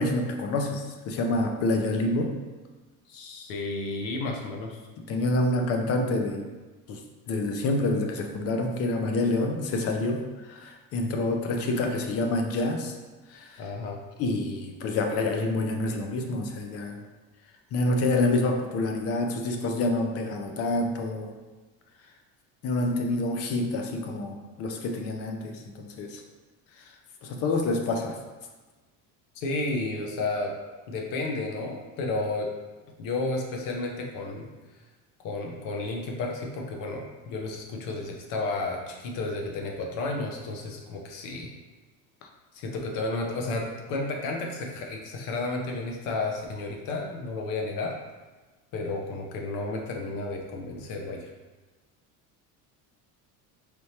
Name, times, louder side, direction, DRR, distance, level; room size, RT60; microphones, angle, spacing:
voice 1, 0.0-2.3 5.0-6.5 6.9-7.0 7.3-12.9 13.3-13.6 14.2-17.0 17.7-21.3 22.6-26.2 27.2-28.2, left 2 dB, 40° left, 3 dB, 0.5 m, -27 dB
voice 2, 3.1-4.8 13.6-14.0 29.3-30.5 30.9-32.5 33.0-34.5 35.2-41.5 42.5-48.0 48.7-51.3, left 2 dB, 65° left, 1 dB, 0.8 m, -32 dB
4.4 x 3.4 x 2.8 m, 1.2 s
cardioid pair, 160°, 36 cm